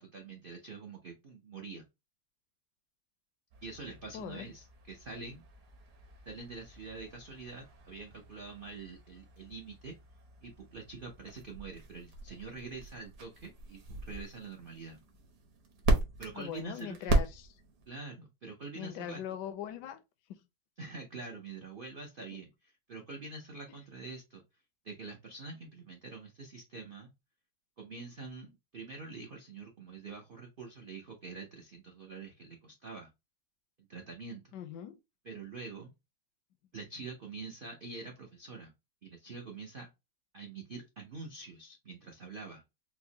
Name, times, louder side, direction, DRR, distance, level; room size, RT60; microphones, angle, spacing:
voice 1, 0.0-1.8 3.6-5.4 6.3-9.9 10.4-15.0 16.2-17.2 17.9-19.2 20.8-24.4 24.8-27.1 27.8-33.1 33.8-34.5 35.2-35.9 36.7-38.7 39.0-39.9 40.3-42.6, right 4 dB, 85° right, 0.4 m, -45 dB
sound 1, 3.5-17.9, right 2 dB, 60° right, 1.2 m, -37 dB
voice 2, 4.1-4.5 16.3-17.5 18.7-20.0 20.3-20.4 34.5-35.0, left 10 dB, 75° left, 1.1 m, -41 dB
4.5 x 2.1 x 2.7 m
omnidirectional pair, 1.9 m